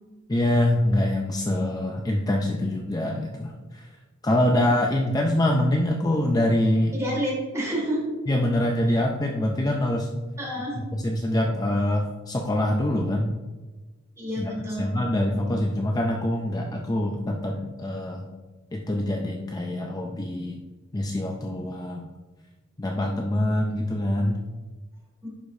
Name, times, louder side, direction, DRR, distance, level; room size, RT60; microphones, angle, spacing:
voice 1, 0.3-3.9 4.2-6.9 8.3-10.1 10.9-13.3 14.4-14.5 14.8-18.3 18.7-20.6 20.9-22.1 22.8-24.4, left 1 dB, 20° left, 1 dB, 0.5 m, -24 dB
voice 2, 6.9-8.0 8.9-9.0 10.4-10.8 14.2-14.9 25.2-25.3, equal, 15° right, -3 dB, 2.1 m, -29 dB
11.0 x 5.0 x 2.6 m, 1.2 s
head